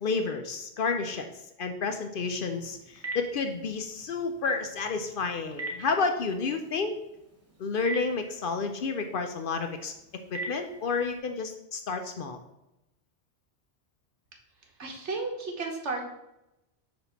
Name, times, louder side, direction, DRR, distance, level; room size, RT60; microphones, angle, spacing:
voice 1, 0.0-1.3 1.6-7.0 7.6-9.9 10.3-12.4, left 4 dB, 60° left, 6 dB, 0.7 m, -30 dB
Telephone, 2.3-11.2, right 1 dB, 15° right, 0.8 m, -44 dB
voice 2, 14.8-16.0, right 3 dB, 85° right, 2 dB, 1.4 m, -33 dB
6.0 x 2.9 x 5.6 m, 0.87 s
omnidirectional pair, 1.2 m